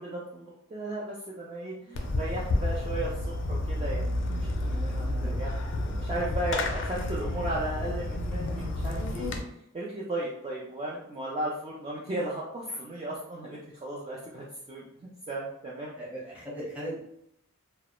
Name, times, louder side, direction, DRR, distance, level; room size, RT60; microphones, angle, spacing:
voice 1, 0.0-9.3 9.7-15.9, right 1 dB, 25° right, -5 dB, 0.3 m, -36 dB
Fireworks, 1.9-9.4, left 1 dB, 60° left, 0.4 m, -30 dB
voice 2, 5.1-5.4 16.0-17.0, equal, 5° right, -7 dB, 0.8 m, -38 dB
2.2 x 2.0 x 2.9 m, 0.75 s
head